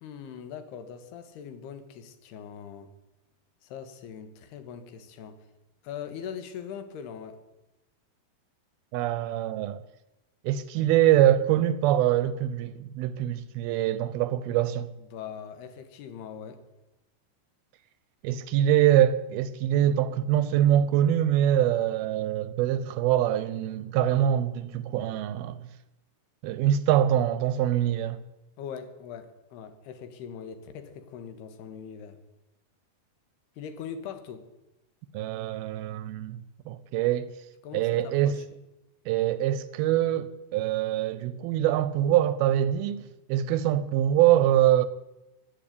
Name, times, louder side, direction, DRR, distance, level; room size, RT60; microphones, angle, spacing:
voice 1, 0.0-2.9 3.6-5.4 5.8-7.4 15.1-16.6 28.6-32.2 33.6-34.5 37.6-38.4, left 7 dB, 80° left, 3.3 m, -41 dB
voice 2, 8.9-9.8 10.4-14.9 18.2-25.6 26.4-28.2 35.1-37.3 37.7-38.4 39.1-43.0 43.3-44.9, right 11 dB, 80° right, 2.4 m, -24 dB
15.5 x 10.5 x 8.6 m
omnidirectional pair, 4.7 m